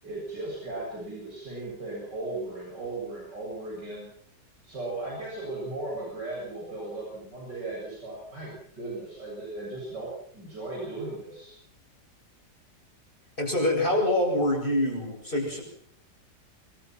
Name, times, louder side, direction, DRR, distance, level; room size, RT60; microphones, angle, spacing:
voice 1, 0.0-4.1 4.6-11.5, right 2 dB, 90° right, -3 dB, 8.4 m, -37 dB
voice 2, 13.4-15.6, left 1 dB, 30° left, 0 dB, 8.2 m, -25 dB
28.0 x 21.5 x 6.1 m, 0.63 s
omnidirectional pair, 1.8 m